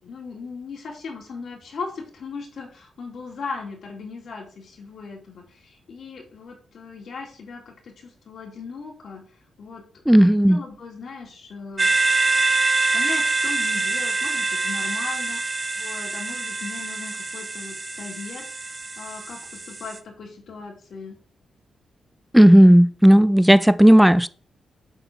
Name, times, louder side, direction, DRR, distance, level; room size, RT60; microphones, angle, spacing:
voice 1, 0.0-9.2 9.6-11.9 12.9-21.2, left 4 dB, 65° left, 2.6 m, -38 dB
voice 2, 10.1-10.6 22.3-24.3, equal, 5° right, 0.4 m, -13 dB
sound 1, 11.8-20.0, right 3 dB, 30° right, 0.9 m, -25 dB
8.0 x 4.0 x 6.6 m
cardioid pair, 90°, 0 cm